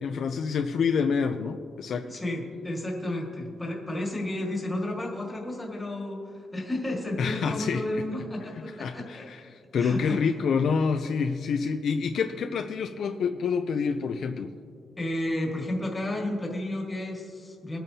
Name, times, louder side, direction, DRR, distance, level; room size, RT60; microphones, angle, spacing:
voice 1, 0.0-2.1 7.2-8.0 8.8-14.5, left 5 dB, 55° left, 6 dB, 0.4 m, -27 dB
voice 2, 2.1-9.3 9.7-10.3 15.0-17.8, left 1 dB, 10° left, -1 dB, 1.8 m, -32 dB
21.0 x 8.8 x 2.8 m, 2.2 s
wide cardioid pair, 180°, 0 cm